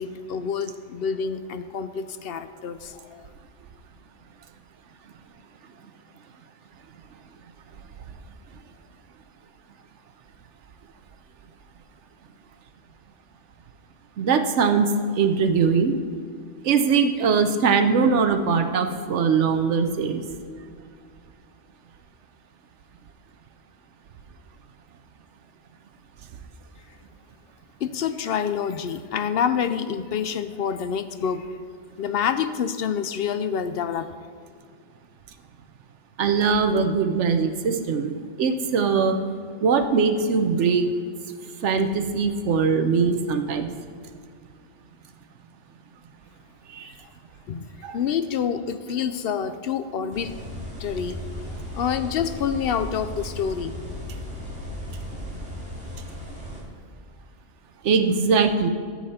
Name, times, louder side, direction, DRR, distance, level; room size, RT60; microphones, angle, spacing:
voice 1, 0.0-3.3 27.8-31.6 32.0-34.1 47.5-50.3 50.8-51.2 51.7-53.8, left 7 dB, 60° left, 11 dB, 0.7 m, -27 dB
voice 2, 14.2-14.9 15.2-16.0 16.6-20.2 36.2-39.2 39.6-40.9 41.6-43.7 46.7-46.9 47.8-48.0 57.8-58.7, right 5 dB, 75° right, 8 dB, 1.1 m, -21 dB
sound 1, 50.1-56.6, left 1 dB, 5° right, 2.4 m, -36 dB
13.0 x 7.3 x 4.3 m, 2.2 s
omnidirectional pair, 1.2 m